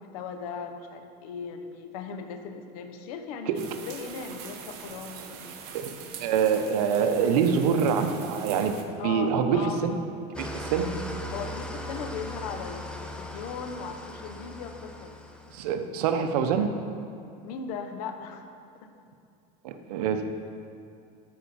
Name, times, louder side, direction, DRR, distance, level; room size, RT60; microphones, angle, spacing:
voice 1, 0.0-5.5 9.0-9.8 11.3-15.1 17.4-18.4 18.8-18.9, left 6 dB, 75° left, 6 dB, 1.0 m, -38 dB
sound 1, 3.5-8.8, right 7 dB, 60° right, 1.2 m, -43 dB
voice 2, 5.9-8.8 9.0-10.0 10.4-10.9 15.5-16.7 19.6-20.3, right 7 dB, 85° right, 7 dB, 0.9 m, -25 dB
Engine starting / Idling, 10.3-15.8, equal, 5° left, 0.7 m, -38 dB
13.0 x 5.7 x 4.3 m, 2.5 s
supercardioid pair, 125°, 19 cm